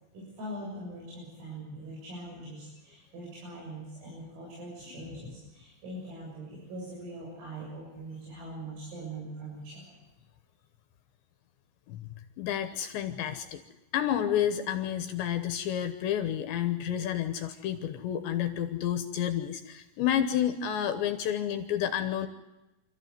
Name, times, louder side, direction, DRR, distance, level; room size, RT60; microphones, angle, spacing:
voice 1, 0.1-9.8, right 1 dB, 85° right, -5 dB, 9.9 m, -42 dB
voice 2, 4.9-5.2 11.9-13.6 13.9-22.3, left 10 dB, 70° left, 9 dB, 3.1 m, -30 dB
27.5 x 14.5 x 9.5 m, 1.0 s
omnidirectional pair, 5.9 m